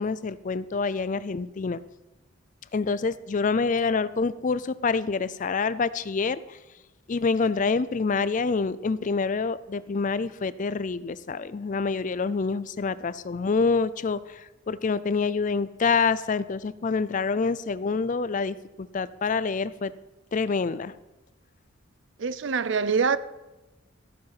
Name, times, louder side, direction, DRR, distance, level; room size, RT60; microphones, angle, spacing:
voice 1, 0.0-1.8 2.7-6.6 7.1-19.9 20.3-20.9, left 4 dB, 40° left, 0.4 m, -27 dB
voice 2, 22.2-23.2, right 5 dB, 60° right, 0.5 m, -24 dB
14.5 x 7.6 x 5.9 m
head